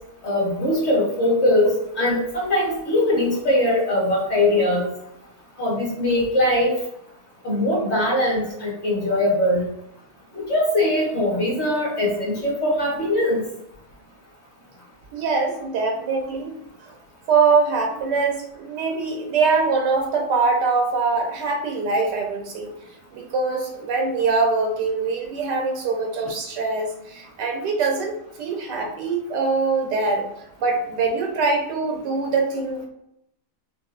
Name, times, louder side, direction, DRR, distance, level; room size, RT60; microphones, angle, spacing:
voice 1, 0.2-4.9 5.6-6.7 7.4-9.7 10.3-13.4, left 1 dB, 45° left, -4 dB, 1.5 m, -21 dB
voice 2, 15.1-16.5 17.3-22.7 23.1-30.2 30.6-32.9, right 4 dB, 85° right, 2 dB, 1.5 m, -23 dB
5.2 x 2.7 x 2.4 m, 0.80 s
omnidirectional pair, 1.8 m